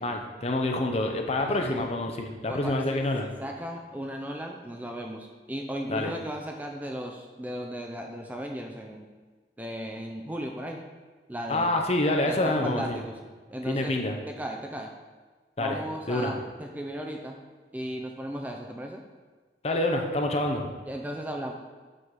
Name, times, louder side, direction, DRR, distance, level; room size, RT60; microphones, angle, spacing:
voice 1, 0.0-3.3 5.9-6.1 11.5-13.0 13.6-14.2 15.6-15.8 16.1-16.4 19.6-20.7, left 1 dB, 35° left, 3 dB, 0.7 m, -27 dB
voice 2, 2.5-3.0 3.4-9.1 9.6-10.8 11.3-11.8 12.2-13.1 13.5-13.9 14.3-14.9 15.6-17.4 17.7-19.0 20.9-21.5, equal, 10° right, 2 dB, 0.4 m, -36 dB
7.6 x 4.1 x 4.8 m, 1.4 s
head